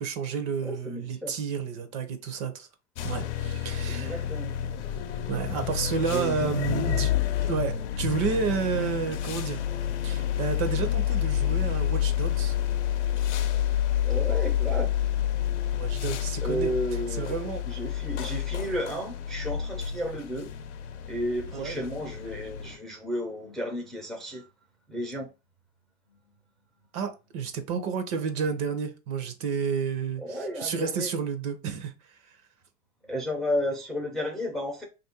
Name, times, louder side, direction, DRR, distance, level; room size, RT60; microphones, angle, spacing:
voice 1, 0.0-2.7 3.0-4.2 5.3-7.1 7.5-9.6 10.0-12.5 15.7-16.7 17.2-17.6 21.5-21.8 26.9-32.4, right 6 dB, 40° right, 0.7 m, -31 dB
voice 2, 0.6-1.3 3.9-4.5 6.1-6.3 14.0-15.0 16.4-17.4 17.7-20.5 21.1-24.4 24.9-25.3 30.2-31.1 33.1-34.9, equal, ahead, 0.5 m, -32 dB
sound 1, 3.0-22.8, left 10 dB, 75° left, 0.7 m, -29 dB
3.0 x 2.6 x 4.3 m
supercardioid pair, 145°, 34 cm